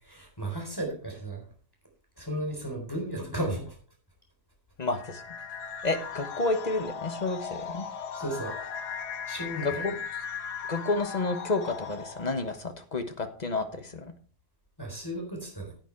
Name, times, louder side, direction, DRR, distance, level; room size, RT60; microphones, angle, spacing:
voice 1, 0.0-1.5 2.2-3.8 8.1-8.5 9.3-10.0 14.8-15.7, right 1 dB, 10° left, 0 dB, 3.7 m, -34 dB
voice 2, 4.8-5.2 5.8-7.8 9.6-9.9 10.7-14.1, left 3 dB, 30° left, 7 dB, 1.1 m, -30 dB
sound 1, 4.9-12.5, left 6 dB, 70° left, 1.4 m, -38 dB
10.0 x 9.2 x 4.5 m, 0.41 s
omnidirectional pair, 1.8 m